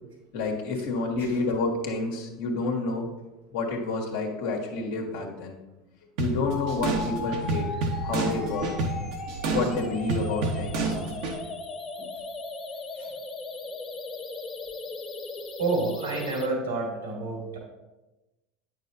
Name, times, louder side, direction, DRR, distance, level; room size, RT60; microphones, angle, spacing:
voice 1, 0.3-3.1 3.5-5.6 6.2-7.7 8.0-8.8 9.5-11.0, left 3 dB, 70° left, 0 dB, 1.5 m, -29 dB
sound 1, 6.2-11.4, right 3 dB, 60° right, 1.1 m, -29 dB
sound 2, 6.5-16.5, left 3 dB, 30° left, 1.2 m, -37 dB
voice 2, 15.6-17.6, right 3 dB, 80° right, -1 dB, 2.7 m, -29 dB
9.4 x 6.1 x 2.7 m, 1.1 s
hypercardioid pair, 80°, 0 cm